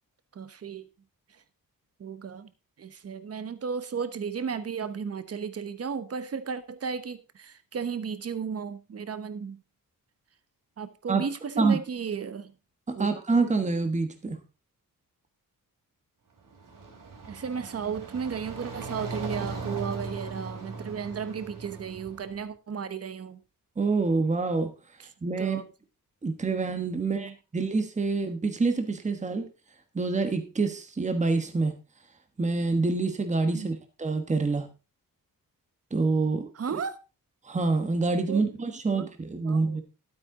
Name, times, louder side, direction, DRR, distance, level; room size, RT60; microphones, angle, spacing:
voice 1, 0.3-0.9 1.3-1.4 2.0-2.5 2.8-9.6 10.8-12.5 12.9-13.1 17.3-23.4 25.0-25.1 25.4-25.7 27.0-27.3 33.5-33.7 36.5-37.0 38.3-38.4 38.9-39.1 39.4-39.8, right 6 dB, 45° right, 12 dB, 1.1 m, -34 dB
voice 2, 12.9-14.4 23.8-24.7 25.2-25.6 26.2-29.5 29.9-31.7 32.4-34.7 35.9-36.5 37.4-39.8, right 3 dB, 20° right, 7 dB, 1.3 m, -26 dB
sound 1, 16.4-22.4, right 3 dB, 60° right, 3.8 m, -39 dB
12.0 x 8.6 x 3.7 m, 0.30 s
wide cardioid pair, 145°, 35 cm